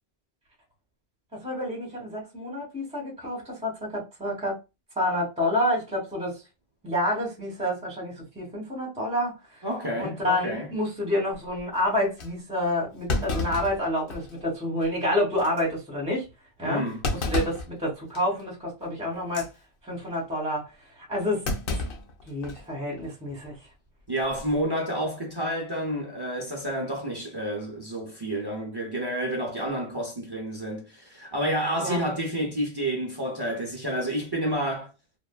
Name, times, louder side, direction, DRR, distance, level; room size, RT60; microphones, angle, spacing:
voice 1, 1.3-4.6 5.0-6.4 6.8-9.6 10.0-16.3 16.6-16.8 17.2-19.5 19.8-20.7 21.1-21.8 22.3-23.5 31.8-32.0, left 1 dB, 5° right, 1.0 m, -28 dB
voice 2, 9.6-10.7 16.6-17.0 24.1-34.9, right 1 dB, 35° right, 0.4 m, -29 dB
Thump thud, 11.6-11.7 12.2-12.3 13.1-14.4 14.8-14.9 15.4-15.6 17.0-17.7 18.1-18.4 19.2-19.5 21.4-22.7 23.0-23.1 24.2-24.5, left 2 dB, 60° left, 0.7 m, -30 dB
3.2 x 2.1 x 2.2 m
omnidirectional pair, 1.1 m